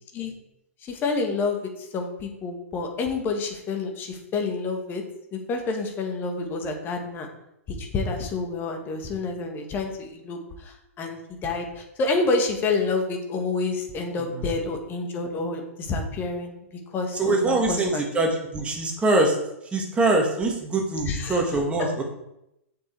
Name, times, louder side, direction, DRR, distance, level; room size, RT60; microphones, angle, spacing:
voice 1, 0.8-1.6 1.9-5.0 5.3-7.3 7.7-16.5 16.9-18.0 21.0-21.4 21.8-21.9, left 3 dB, 25° left, 4 dB, 1.7 m, -28 dB
voice 2, 17.1-19.4 19.7-22.0, right 2 dB, 15° right, 1 dB, 1.8 m, -23 dB
7.2 x 5.9 x 4.7 m, 0.84 s
figure-of-eight pair, 110°, 8 cm